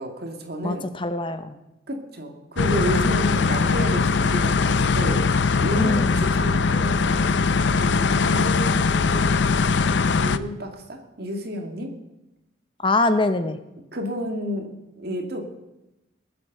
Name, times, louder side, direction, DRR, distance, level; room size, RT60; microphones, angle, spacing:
voice 1, 0.0-0.8 1.9-5.3 5.6-7.2 7.7-9.5 10.1-11.9 13.9-15.4, right 1 dB, 55° right, 3 dB, 2.2 m, -31 dB
voice 2, 0.6-1.6 5.7-6.3 12.8-13.6, left 2 dB, 25° left, 10 dB, 0.7 m, -24 dB
sound 1, 2.6-10.4, left 4 dB, 65° left, 0.5 m, -21 dB
19.5 x 7.5 x 6.6 m, 0.95 s
head